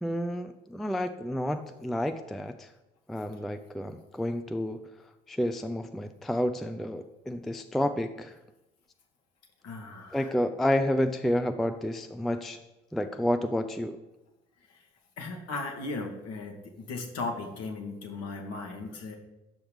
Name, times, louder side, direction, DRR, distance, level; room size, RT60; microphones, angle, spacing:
voice 1, 0.0-2.7 3.1-4.8 5.3-8.3 10.1-12.6 12.9-14.0, left 1 dB, ahead, 9 dB, 0.4 m, -30 dB
voice 2, 9.6-10.3 14.7-14.9 15.2-19.1, left 3 dB, 55° left, 3 dB, 1.6 m, -37 dB
11.0 x 7.0 x 3.4 m, 0.96 s
figure-of-eight pair, 50°, 31 cm